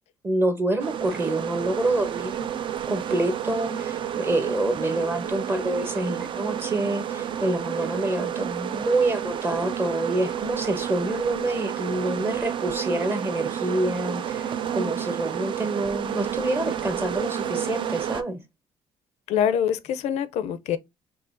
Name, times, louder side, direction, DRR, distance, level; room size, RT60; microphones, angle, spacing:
voice 1, 0.2-2.6 2.9-18.4, right 2 dB, 20° right, 0.8 m, -27 dB
sound 1, 0.8-18.2, right 9 dB, 45° right, 0.4 m, -30 dB
voice 2, 19.3-20.8, left 9 dB, 80° left, 0.4 m, -25 dB
4.6 x 3.0 x 2.5 m
cardioid pair, 120°, 11 cm